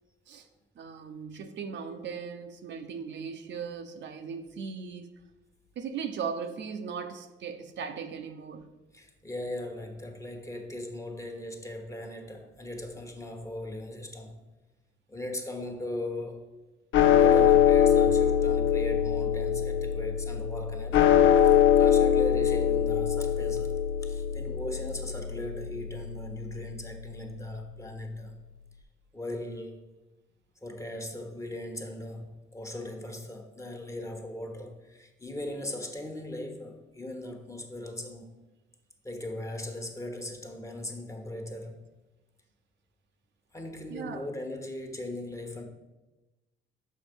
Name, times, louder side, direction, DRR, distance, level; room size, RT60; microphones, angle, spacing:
voice 1, 0.8-5.1 5.8-8.7 43.9-44.3, right 6 dB, 65° right, 6 dB, 0.7 m, -38 dB
voice 2, 8.9-14.4 15.1-16.6 17.2-21.1 21.4-23.7 24.0-28.4 29.1-29.8 30.6-38.4 39.0-41.8 43.5-45.6, left 1 dB, 15° left, 4 dB, 1.2 m, -39 dB
sound 1, 16.9-27.4, left 9 dB, 75° left, 0.6 m, -23 dB
6.4 x 5.3 x 5.2 m, 1.1 s
cardioid pair, 90°, 20 cm